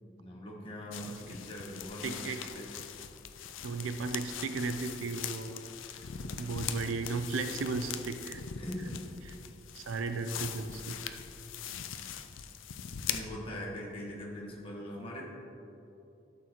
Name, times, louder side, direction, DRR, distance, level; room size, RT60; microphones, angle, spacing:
voice 1, 0.0-2.7 6.1-6.3 8.6-9.0 11.7-12.1 13.1-15.3, equal, 30° left, -3 dB, 1.3 m, -42 dB
sound 1, 0.9-13.2, left 8 dB, 85° left, 0.5 m, -41 dB
voice 2, 2.0-2.4 3.6-5.6 6.4-8.4 9.2-9.4 9.7-11.2, right 4 dB, 90° right, 8 dB, 0.5 m, -35 dB
12.0 x 6.7 x 3.0 m, 2.8 s
head